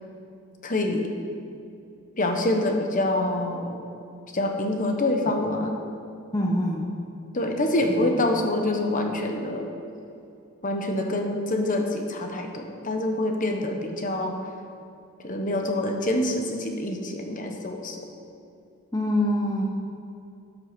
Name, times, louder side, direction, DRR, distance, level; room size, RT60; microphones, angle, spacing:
voice 1, 0.6-1.1 2.2-3.8 4.3-5.7 7.3-9.7 10.6-14.4 15.2-18.0, left 1 dB, 35° left, 3 dB, 1.1 m, -26 dB
voice 2, 6.3-6.9 7.9-8.1 13.9-14.0 18.9-19.6, left 1 dB, 15° left, -2 dB, 0.8 m, -25 dB
12.5 x 6.5 x 6.0 m, 2.6 s
head